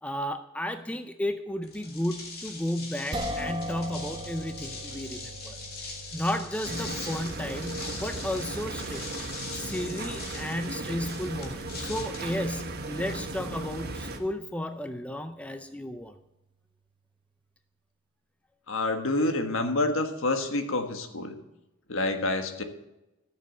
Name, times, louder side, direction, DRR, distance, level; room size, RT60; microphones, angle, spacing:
voice 1, 0.0-5.6 6.1-9.1 9.5-16.2, left 1 dB, 5° left, 8 dB, 0.5 m, -33 dB
sound 1, 1.6-13.1, left 4 dB, 45° left, 2.5 m, -42 dB
sound 2, 3.1-15.4, equal, 20° right, 1.0 m, -42 dB
sound 3, 6.6-14.2, right 2 dB, 45° right, 1.3 m, -36 dB
voice 2, 18.7-21.4 21.9-22.6, left 2 dB, 65° left, 6 dB, 1.5 m, -28 dB
13.5 x 6.8 x 7.3 m, 0.94 s
head